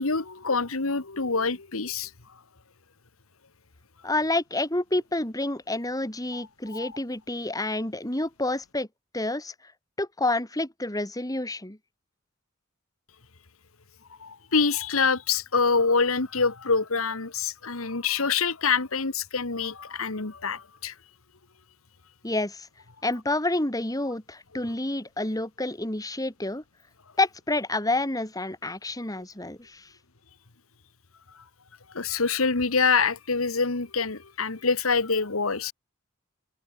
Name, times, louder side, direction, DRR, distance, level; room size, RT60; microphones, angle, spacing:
voice 1, 0.0-2.1 6.3-6.4 6.7-6.9 14.2-20.9 31.9-35.7, left 4 dB, 85° left, 1.8 m, -26 dB
voice 2, 4.0-8.9 9.1-9.5 10.0-11.8 22.2-22.7 23.0-26.6 27.2-29.9, left 2 dB, 15° left, 3.4 m, -28 dB
head